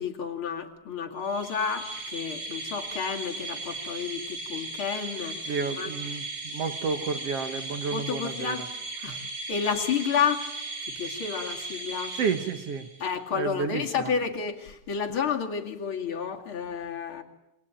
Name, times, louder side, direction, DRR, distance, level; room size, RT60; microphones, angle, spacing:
voice 1, 0.0-5.4 5.8-5.9 7.9-8.6 9.0-9.2 9.5-10.4 11.0-12.1 13.0-17.2, left 6 dB, 40° left, 3 dB, 2.8 m, -30 dB
sound 1, 1.2-13.1, right 2 dB, 85° right, 9.7 m, -37 dB
voice 2, 5.5-8.6 12.2-12.9 13.3-14.1, right 5 dB, 55° right, 10 dB, 2.0 m, -31 dB
27.5 x 23.0 x 9.0 m, 0.88 s
omnidirectional pair, 3.8 m